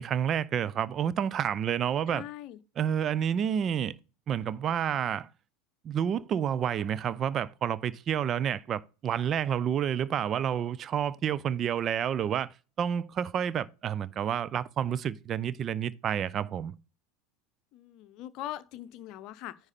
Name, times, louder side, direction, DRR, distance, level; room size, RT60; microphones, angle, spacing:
voice 1, 0.0-2.2 2.8-4.0 4.3-5.3 5.8-16.7, right 9 dB, 40° right, 0.5 m, -29 dB
voice 2, 2.1-2.6 17.7-19.5, left 13 dB, 50° left, 0.7 m, -41 dB
9.7 x 4.7 x 4.1 m
figure-of-eight pair, 75°, 0 cm